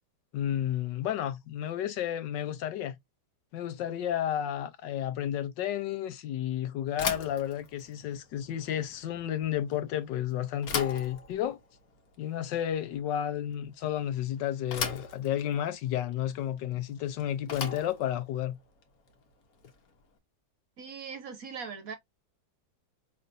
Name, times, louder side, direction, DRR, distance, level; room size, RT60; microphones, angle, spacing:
voice 1, 0.3-3.0 3.5-11.6 12.2-18.6, left 11 dB, 75° left, 1.3 m, -32 dB
Bicycle / Thump thud, 6.9-20.0, left 5 dB, 55° left, 1.4 m, -40 dB
voice 2, 20.8-22.0, right 6 dB, 55° right, 1.1 m, -40 dB
5.5 x 3.3 x 2.5 m
omnidirectional pair, 2.1 m